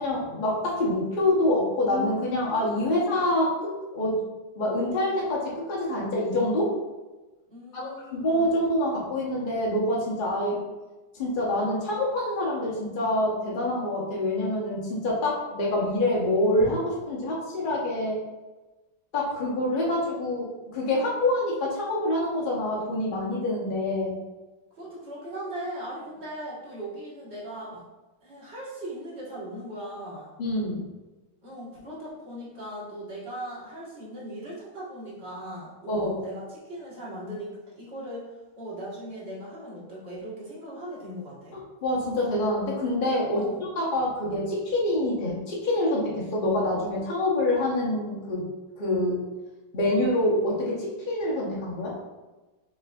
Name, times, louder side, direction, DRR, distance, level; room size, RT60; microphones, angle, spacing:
voice 1, 0.0-4.2 4.6-6.7 7.7-10.6 11.1-18.2 19.1-24.2 30.4-30.8 35.9-36.1 41.5-48.5 48.8-49.2 49.7-52.0, left 1 dB, 70° left, -5 dB, 0.4 m, -26 dB
voice 2, 7.5-8.3 10.4-10.6 24.7-27.8 28.2-30.3 31.4-38.3 38.6-41.6 43.3-43.6, right 1 dB, 35° right, -7 dB, 1.4 m, -39 dB
6.0 x 3.3 x 2.3 m, 1.1 s
omnidirectional pair, 2.2 m